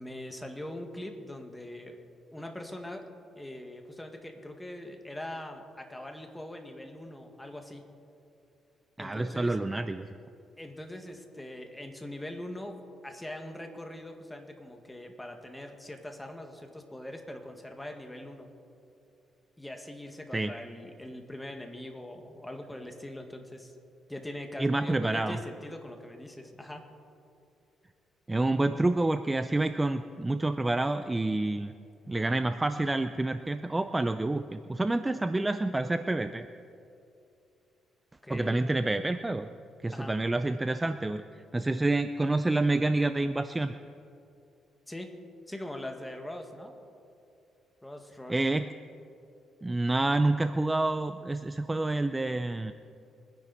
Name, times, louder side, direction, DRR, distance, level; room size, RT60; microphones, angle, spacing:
voice 1, 0.0-2.0 2.3-3.1 3.4-7.8 9.0-9.6 10.6-18.5 19.6-23.7 24.1-26.8 38.2-38.6 39.9-40.1 44.9-45.1 45.5-46.7 47.8-48.5, left 1 dB, 10° left, 4 dB, 1.9 m, -42 dB
voice 2, 9.0-10.1 20.3-20.5 24.6-25.4 28.3-31.7 32.1-36.5 38.3-39.5 39.8-41.2 41.5-43.7 48.3-48.7 49.6-52.7, right 2 dB, 15° right, 10 dB, 0.5 m, -28 dB
23.5 x 10.5 x 4.2 m, 2.6 s
cardioid pair, 90°, 0 cm